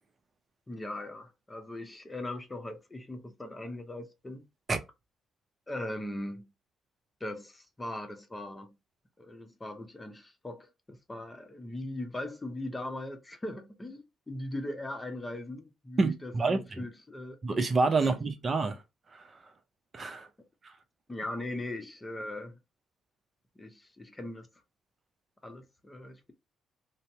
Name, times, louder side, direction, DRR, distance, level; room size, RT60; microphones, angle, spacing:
voice 1, 0.7-4.5 5.7-6.5 7.2-8.7 9.2-17.4 18.0-18.2 21.1-22.6 23.6-24.5 25.4-26.3, left 1 dB, 20° left, 0.7 m, -40 dB
voice 2, 16.0-16.6 17.4-18.8 19.1-19.4 19.9-20.3 20.6-20.7, right 3 dB, 40° right, 0.6 m, -28 dB
2.7 x 2.0 x 3.3 m
hypercardioid pair, 55°, 0 cm